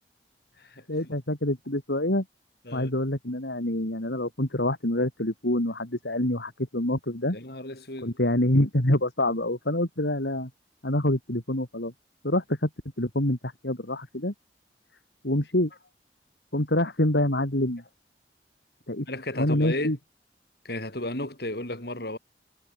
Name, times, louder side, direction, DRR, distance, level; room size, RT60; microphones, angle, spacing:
voice 1, 0.9-2.2 2.7-7.4 8.0-10.5 10.8-11.9 12.2-12.7 13.0-14.3 15.2-15.7 16.5-17.8 18.9-19.1 19.4-20.0, left 1 dB, 80° left, 3.8 m, -26 dB
voice 2, 7.3-8.2 19.1-20.0 20.6-22.2, left 1 dB, 60° left, 6.3 m, -34 dB
head